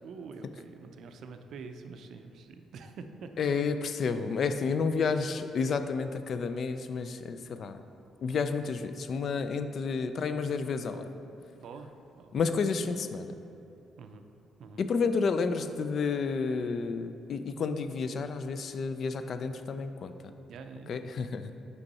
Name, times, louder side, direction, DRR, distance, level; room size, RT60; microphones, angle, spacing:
voice 1, 0.0-3.3 11.5-12.3 14.0-14.3 14.6-14.9 20.5-20.9, right 5 dB, 70° right, 7 dB, 0.4 m, -46 dB
voice 2, 3.4-7.8 8.2-11.1 12.3-13.3 14.8-20.1 20.9-21.5, left 5 dB, 55° left, 9 dB, 0.3 m, -30 dB
5.3 x 4.6 x 4.1 m, 2.8 s
cardioid pair, 90°, 0 cm